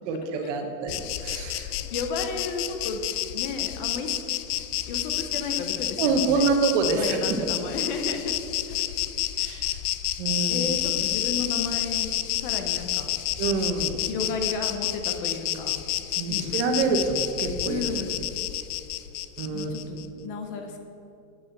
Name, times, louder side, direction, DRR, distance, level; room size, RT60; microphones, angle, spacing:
voice 1, 0.1-1.7 6.0-7.4 9.4-9.8 10.2-10.6 13.4-13.9 16.2-18.0 19.4-19.7, right 4 dB, 55° right, 5 dB, 1.1 m, -26 dB
Insect, 0.9-20.1, left 14 dB, 85° left, 0.6 m, -30 dB
voice 2, 1.7-3.0 3.3-4.2 4.9-6.4 6.9-8.3 8.6-8.9 10.5-13.1 14.0-15.8 16.3-16.6 17.6-18.2 19.5-20.8, left 4 dB, 35° left, 5 dB, 0.6 m, -33 dB
8.2 x 5.6 x 7.1 m, 2.7 s
supercardioid pair, 180°, 44 cm